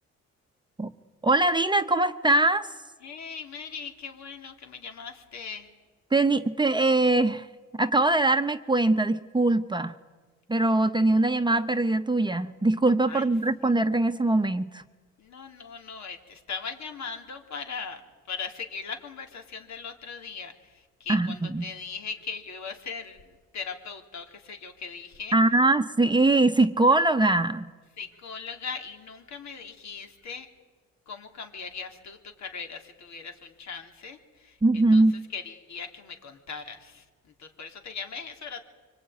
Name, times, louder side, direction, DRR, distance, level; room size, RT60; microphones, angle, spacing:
voice 1, 1.2-2.7 6.1-7.5 7.8-9.9 10.5-14.8 21.1-21.7 25.3-27.7 34.6-35.1, right 2 dB, 15° right, 9 dB, 1.0 m, -22 dB
voice 2, 3.0-5.7 13.1-13.3 15.2-18.0 18.3-25.3 28.0-30.5 31.1-35.0 35.3-37.1 37.4-38.6, left 5 dB, 65° left, 4 dB, 3.5 m, -39 dB
25.0 x 24.5 x 9.4 m, 1.3 s
cardioid pair, 90°, 30 cm